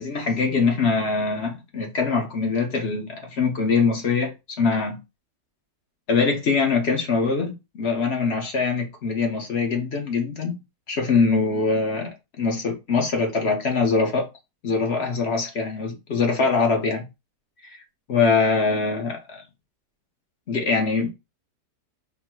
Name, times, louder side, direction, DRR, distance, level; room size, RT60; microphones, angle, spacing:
voice 1, 0.0-4.3 4.6-5.0 6.1-10.6 10.9-12.1 12.4-14.3 14.6-17.1 17.7-17.8 18.1-19.4 20.5-21.1, left 4 dB, 50° left, 0.8 m, -23 dB
3.8 x 2.0 x 4.3 m
omnidirectional pair, 1.8 m